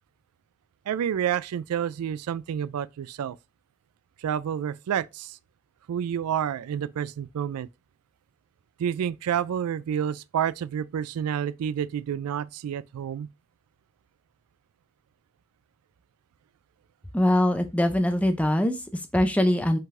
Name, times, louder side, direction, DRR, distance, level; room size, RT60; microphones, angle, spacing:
voice 1, 0.9-3.4 4.2-5.4 5.9-7.7 8.8-13.3, right 9 dB, 90° right, 0.3 m, -29 dB
voice 2, 17.1-19.8, left 1 dB, 5° left, 0.5 m, -23 dB
5.4 x 3.8 x 2.5 m
head